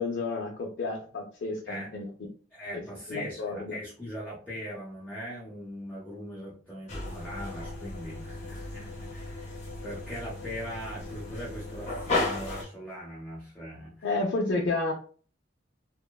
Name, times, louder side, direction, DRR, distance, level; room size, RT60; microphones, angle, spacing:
voice 1, 0.0-2.1 3.1-3.7 14.0-14.9, left 3 dB, 65° left, -1 dB, 0.4 m, -30 dB
voice 2, 2.5-14.1 14.5-14.6, equal, 10° left, -7 dB, 0.7 m, -40 dB
sound 1, 6.9-12.6, left 2 dB, 40° left, 0.8 m, -35 dB
2.9 x 2.1 x 2.2 m, 0.41 s
head